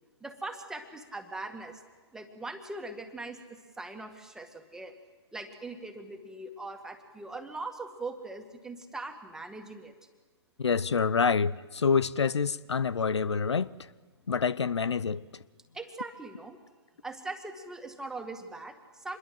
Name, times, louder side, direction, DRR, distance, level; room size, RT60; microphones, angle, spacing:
voice 1, 0.2-1.8 2.1-4.9 5.3-9.9 15.7-16.6 17.0-19.2, right 2 dB, 5° right, 2.0 m, -41 dB
voice 2, 10.6-13.8 14.3-15.2, left 5 dB, 90° left, 0.7 m, -27 dB
26.0 x 21.5 x 7.8 m
hypercardioid pair, 135°, 14 cm